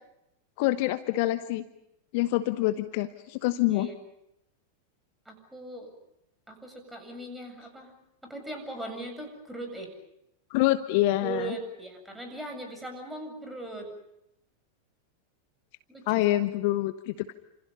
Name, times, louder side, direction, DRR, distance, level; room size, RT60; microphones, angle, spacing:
voice 1, 0.6-1.6 2.1-3.9 10.5-11.5 16.1-17.3, left 16 dB, 50° left, 11 dB, 1.1 m, -26 dB
voice 2, 5.3-5.9 6.5-7.9 8.2-9.9 11.2-13.9 15.9-16.2, right 2 dB, 5° right, 4 dB, 7.5 m, -39 dB
30.0 x 27.0 x 5.4 m, 0.82 s
figure-of-eight pair, 90°, 0 cm